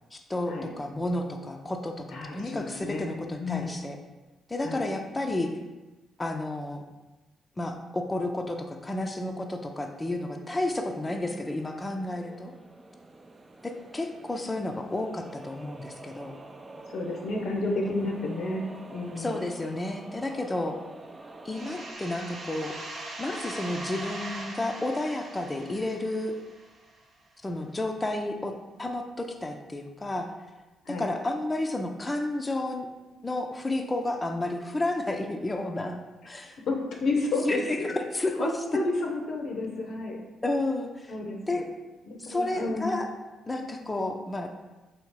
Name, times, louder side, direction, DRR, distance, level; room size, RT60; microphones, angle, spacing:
voice 1, 0.1-4.0 4.5-5.5 6.2-6.8 7.6-12.5 13.6-16.3 17.8-18.1 19.2-20.8 21.4-22.8 23.2-26.3 27.4-30.3 30.9-32.9 33.2-36.0 36.3-36.6 37.4-38.5 40.4-41.1 41.5-41.6 42.2-43.1 43.5-44.7, left 2 dB, 25° left, 3 dB, 0.5 m, -31 dB
voice 2, 2.1-3.1 3.4-3.8 4.6-4.8 16.9-18.6 18.9-19.5 30.8-31.1 36.7-37.9 38.4-40.2 41.1-41.6 42.1-42.9, left 2 dB, 65° left, 0 dB, 0.7 m, -31 dB
sound 1, 9.7-21.9, right 2 dB, 30° right, 0.4 m, -48 dB
sound 2, 21.5-27.0, right 1 dB, 60° right, 0.7 m, -40 dB
3.1 x 2.7 x 4.5 m, 1.1 s
hypercardioid pair, 45°, 0 cm